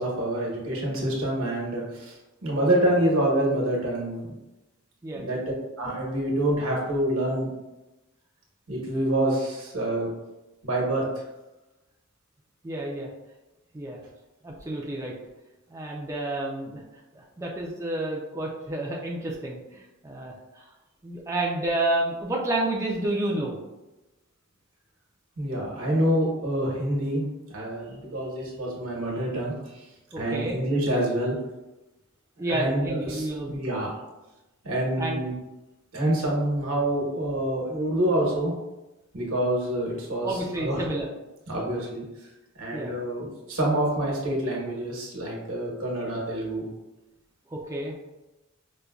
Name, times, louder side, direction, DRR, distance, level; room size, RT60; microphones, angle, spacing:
voice 1, 0.0-2.2 2.4-4.3 5.1-5.4 5.8-7.5 8.7-10.1 10.6-11.0 25.4-29.5 30.2-31.4 32.5-33.9 34.6-35.3 35.9-38.5 39.1-40.8 41.5-42.0 42.6-46.7, right 1 dB, 75° right, -2 dB, 1.0 m, -27 dB
voice 2, 5.0-5.5 12.6-13.1 13.7-14.0 14.4-15.2 15.7-16.8 17.1-20.6 21.0-23.6 30.1-30.6 32.4-33.5 35.0-35.2 40.2-41.1 42.7-42.9 47.5-48.0, right 1 dB, 15° right, -3 dB, 0.4 m, -30 dB
5.0 x 2.2 x 2.3 m, 1.0 s
head